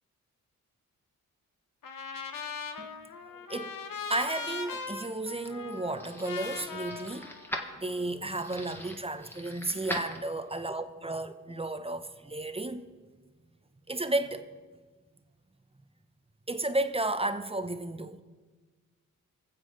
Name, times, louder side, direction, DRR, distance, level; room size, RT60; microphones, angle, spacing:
Trumpet, 1.8-8.1, left 5 dB, 65° left, 1.0 m, -40 dB
voice 1, 3.3-3.8 4.1-7.3 7.8-12.8 13.9-14.5 16.5-18.2, right 2 dB, 15° right, 0.8 m, -33 dB
sound 1, 4.7-10.7, equal, 5° left, 1.6 m, -42 dB
22.0 x 7.5 x 3.8 m
cardioid pair, 50°, 35 cm